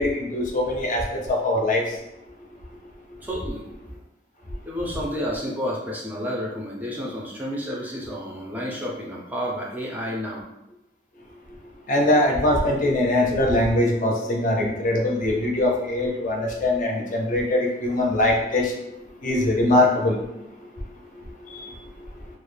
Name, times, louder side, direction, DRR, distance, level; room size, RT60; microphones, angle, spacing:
voice 1, 0.0-1.9 11.9-18.7 19.2-20.2 21.5-21.7, left 1 dB, 45° left, 0 dB, 0.5 m, -22 dB
voice 2, 3.2-3.6 4.7-10.4, equal, 10° right, -3 dB, 0.4 m, -30 dB
2.2 x 2.0 x 3.1 m, 0.88 s
head